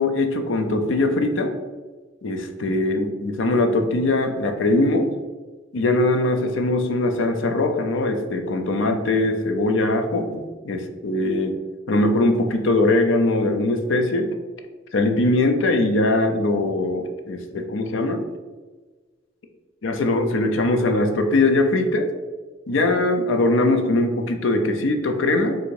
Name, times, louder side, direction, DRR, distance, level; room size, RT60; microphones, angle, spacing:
voice 1, 0.0-1.5 2.2-5.1 5.7-10.3 10.6-11.5 11.9-14.3 14.9-18.2 19.8-22.1 22.7-25.6, left 2 dB, 85° left, 6 dB, 0.5 m, -21 dB
3.8 x 2.6 x 4.6 m, 1.3 s
head